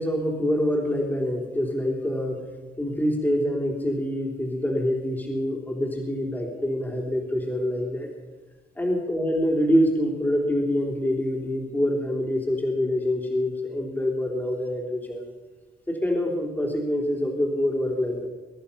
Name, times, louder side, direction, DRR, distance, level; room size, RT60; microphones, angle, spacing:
voice 1, 0.0-2.4 2.8-8.1 8.8-15.3 15.9-18.3, equal, 10° left, -1 dB, 3.6 m, -25 dB
23.0 x 11.0 x 5.7 m, 1.2 s
cardioid pair, 105°, 18 cm